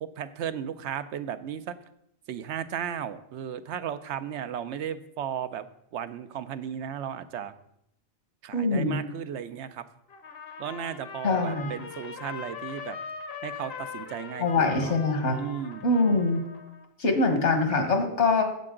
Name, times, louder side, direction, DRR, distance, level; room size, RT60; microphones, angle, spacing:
voice 1, 0.0-1.7 2.3-5.7 5.9-7.5 8.4-9.8 10.6-13.0 13.4-15.0 15.4-15.9 17.7-17.9, right 9 dB, 75° right, 12 dB, 0.9 m, -35 dB
voice 2, 8.5-9.0 11.2-11.7 14.4-15.4 15.8-16.4 17.0-18.4, left 3 dB, 70° left, 5 dB, 1.7 m, -23 dB
Trumpet, 10.1-16.9, left 5 dB, 55° left, 1.1 m, -41 dB
10.5 x 7.7 x 3.7 m, 0.76 s
omnidirectional pair, 1.2 m